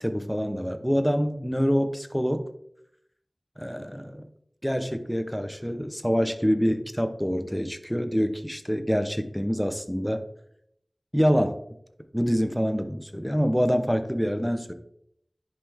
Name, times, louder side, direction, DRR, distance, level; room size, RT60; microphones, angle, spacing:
voice 1, 0.0-2.5 3.6-4.3 4.6-10.2 11.1-11.6 12.1-14.7, equal, ahead, 8 dB, 0.9 m, -26 dB
10.0 x 5.7 x 3.5 m, 0.72 s
wide cardioid pair, 50°, 0 cm